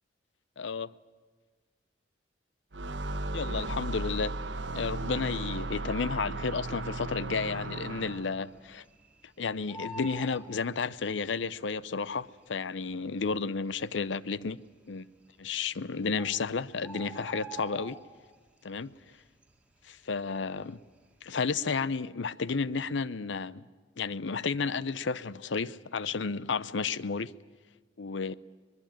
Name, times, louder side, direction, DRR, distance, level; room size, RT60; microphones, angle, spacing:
voice 1, 0.6-0.9 3.3-4.4 4.7-8.8 9.4-14.6 14.9-15.1 15.4-18.0 18.6-18.9 19.8-20.8 21.2-23.7 24.0-27.3 28.0-28.3, left 5 dB, 70° left, 0.6 m, -32 dB
sound 1, 2.7-8.4, right 2 dB, 65° right, 1.1 m, -35 dB
Bird, 6.9-7.4 7.7-7.8 8.0-9.2 9.5-11.3 12.2-12.3 12.9-13.0 13.2-13.3 14.0-14.4 15.4-15.5 15.8-15.9 16.2-18.5 18.8-19.1 19.4-20.8 21.1-21.4, right 2 dB, 5° right, 2.0 m, -45 dB
23.5 x 21.0 x 8.9 m
head